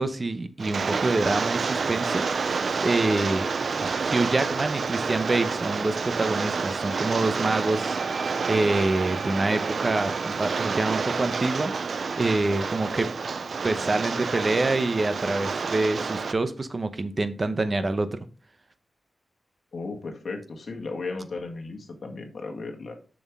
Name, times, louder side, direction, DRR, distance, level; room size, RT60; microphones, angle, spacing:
voice 1, 0.0-3.5 3.8-13.1 13.6-18.2, right 2 dB, 35° right, 0.8 m, -26 dB
Rain, 0.6-16.3, right 5 dB, 60° right, 0.5 m, -29 dB
sound 1, 7.5-13.1, right 4 dB, 80° right, 1.0 m, -41 dB
voice 2, 19.7-22.9, left 3 dB, 60° left, 1.8 m, -35 dB
7.2 x 6.3 x 3.6 m
wide cardioid pair, 110°, 0 cm